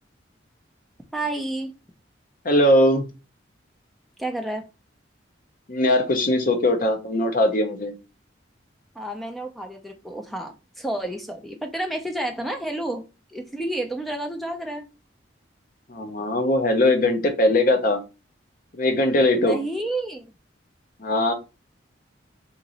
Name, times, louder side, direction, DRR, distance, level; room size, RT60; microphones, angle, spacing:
voice 1, 1.1-1.7 4.2-4.6 8.9-14.9 19.4-20.2, right 1 dB, ahead, 0.5 m, -30 dB
voice 2, 2.4-3.0 5.7-7.9 15.9-18.0 18.7-19.6 21.0-21.3, left 1 dB, 45° left, 0.7 m, -20 dB
3.0 x 2.6 x 3.9 m
head